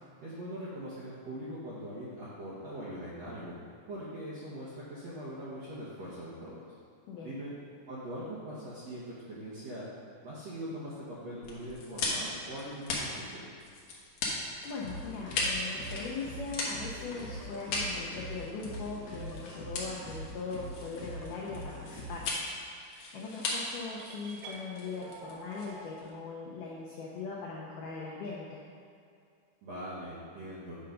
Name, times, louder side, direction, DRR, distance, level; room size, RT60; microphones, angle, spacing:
voice 1, 0.2-3.5 3.9-6.6 7.2-7.5 7.9-9.9 10.2-13.4 29.6-30.8, equal, 70° right, -10 dB, 1.6 m, -41 dB
sound 1, 11.4-26.1, left 3 dB, 70° left, 1.7 m, -38 dB
voice 2, 14.6-22.3 22.8-28.6, left 4 dB, 90° left, -4 dB, 1.8 m, -40 dB
sound 2, 14.8-22.4, equal, 50° left, 3.1 m, -43 dB
sound 3, 24.0-26.0, right 3 dB, 85° right, 2.0 m, -47 dB
8.9 x 3.9 x 5.7 m, 2.4 s
omnidirectional pair, 4.8 m